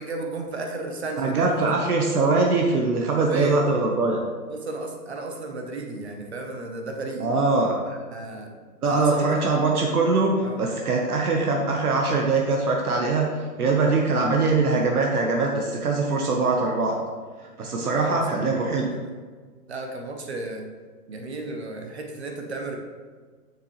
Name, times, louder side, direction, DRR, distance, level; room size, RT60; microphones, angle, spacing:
voice 1, 0.0-1.7 3.1-3.6 4.5-7.3 7.9-8.5 8.8-9.4 10.4-10.6 17.8-18.2 18.9-19.1 19.7-20.6 21.1-22.8, right 2 dB, 40° right, 3 dB, 1.0 m, -33 dB
voice 2, 1.2-4.2 7.2-7.7 8.8-13.3 13.5-17.0 17.6-18.9, right 3 dB, 65° right, 0 dB, 1.1 m, -22 dB
7.0 x 6.7 x 3.2 m, 1.5 s
hypercardioid pair, 175°, 48 cm